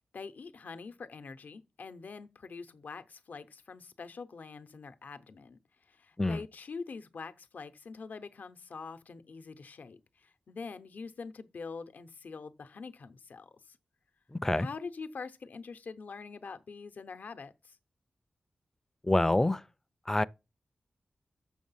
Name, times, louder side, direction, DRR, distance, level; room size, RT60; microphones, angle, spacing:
voice 1, 0.1-5.6 5.9-13.8 14.5-17.8, left 4 dB, 75° left, 0.7 m, -44 dB
voice 2, 14.3-14.7 19.0-19.6 20.1-20.2, left 1 dB, 15° left, 0.3 m, -26 dB
6.6 x 6.3 x 5.6 m
wide cardioid pair, 90°, 3 cm